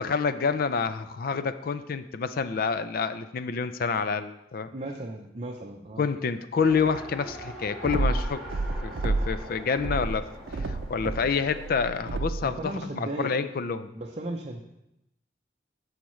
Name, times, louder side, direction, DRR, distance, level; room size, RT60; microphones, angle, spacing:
voice 1, 0.0-4.7 6.0-8.4 8.8-13.9, left 5 dB, 55° left, 12 dB, 0.4 m, -28 dB
voice 2, 4.7-6.1 12.4-13.3 13.9-14.6, right 1 dB, 35° right, 0 dB, 0.6 m, -35 dB
Race car auto racing, 6.6-11.7, equal, ahead, 1.5 m, -42 dB
sound 1, 7.8-9.4 9.8-12.5, right 2 dB, 80° right, 0.5 m, -30 dB
13.5 x 4.9 x 3.1 m, 0.87 s
head